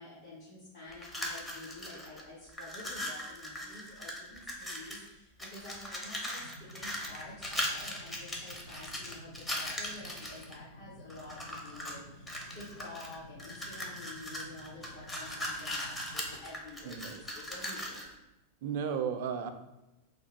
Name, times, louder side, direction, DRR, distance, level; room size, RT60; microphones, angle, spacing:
voice 1, 0.0-18.1, left 2 dB, 60° left, -9 dB, 1.1 m, -49 dB
sound 1, 0.9-2.2 2.5-5.1 5.4-10.5 11.1-12.0 12.3-18.1, left 1 dB, 10° left, 0.6 m, -39 dB
sound 2, 6.4-16.4, left 1 dB, 80° left, 0.4 m, -53 dB
voice 2, 16.8-17.2 18.6-19.5, right 7 dB, 50° right, 7 dB, 0.3 m, -34 dB
2.9 x 2.3 x 4.1 m, 0.97 s
figure-of-eight pair, 90°, 0 cm